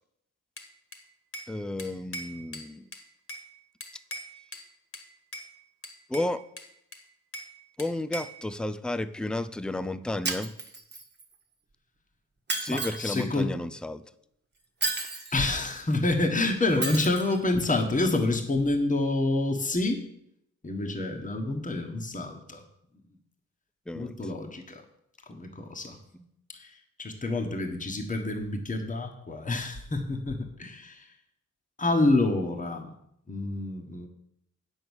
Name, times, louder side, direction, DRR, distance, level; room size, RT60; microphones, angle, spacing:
Bell / Glass, 0.6-1.5 1.8-3.5 3.8-4.7 4.9-5.5 5.8-7.5 7.8-8.4, equal, 45° left, 1.7 m, -41 dB
voice 1, 1.5-2.9 6.1-6.4 7.8-10.5 12.6-14.0 23.9-24.2, left 1 dB, 5° left, 12 dB, 0.4 m, -32 dB
Shatter, 10.2-11.2 12.5-13.2 14.8-15.5 16.8-17.4, right 3 dB, 35° right, 1.4 m, -32 dB
voice 2, 12.7-13.5 15.3-20.0 20.6-22.6 23.9-24.8 25.3-26.0 26.5-31.1 31.8-32.9 33.3-34.1, left 2 dB, 25° left, 3 dB, 1.4 m, -28 dB
8.7 x 6.3 x 7.1 m, 0.74 s
wide cardioid pair, 105°, 32 cm